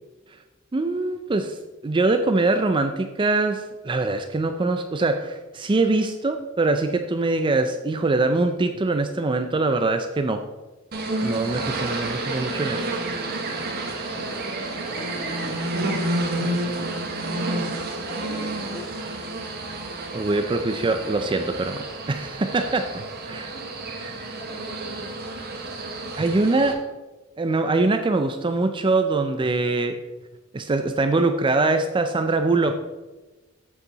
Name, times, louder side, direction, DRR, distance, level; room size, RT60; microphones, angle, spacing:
voice 1, 0.7-10.4 11.2-12.9 20.1-21.8 22.1-23.5 24.0-24.1 26.2-26.8 27.4-29.9 30.5-32.8, right 3 dB, 25° right, 7 dB, 0.4 m, -23 dB
sound 1, 10.9-26.7, right 2 dB, 50° right, 1.3 m, -30 dB
voice 2, 14.1-17.6 18.1-18.9 23.5-23.6 24.4-25.0, equal, 35° left, -4 dB, 2.9 m, -40 dB
8.2 x 7.2 x 4.0 m, 1.2 s
head